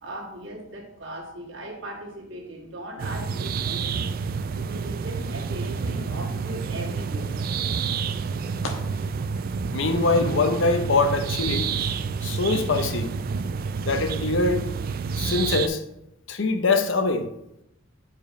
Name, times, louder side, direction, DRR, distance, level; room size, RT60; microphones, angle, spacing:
voice 1, 0.0-4.0 4.5-7.4, right 1 dB, 60° right, 1.7 m, -38 dB
sound 1, 3.0-15.7, right 5 dB, 45° right, 0.3 m, -29 dB
sound 2, 6.7-7.6 8.0-8.7 9.2-11.0 11.5-11.7 12.5-12.7, left 2 dB, 85° left, 1.2 m, -39 dB
voice 2, 9.7-11.9 12.2-13.1 13.8-14.7 15.2-15.8 16.3-17.3, left 3 dB, 65° left, 0.7 m, -23 dB
5.1 x 4.6 x 6.2 m
head